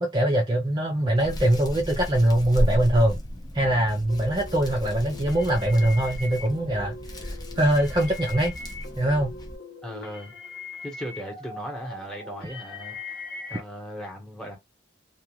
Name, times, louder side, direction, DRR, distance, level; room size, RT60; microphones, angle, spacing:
voice 1, 0.0-3.2 3.5-6.9 7.2-7.3 7.6-8.5 9.0-9.3, right 1 dB, 25° right, 0.5 m, -22 dB
Hands, 1.2-9.6, equal, 20° left, 0.6 m, -33 dB
sound 1, 4.1-13.6, left 3 dB, 55° left, 0.9 m, -41 dB
voice 2, 9.8-10.4 10.8-13.0 13.5-14.6, equal, 5° left, 1.0 m, -37 dB
2.4 x 2.3 x 2.9 m
head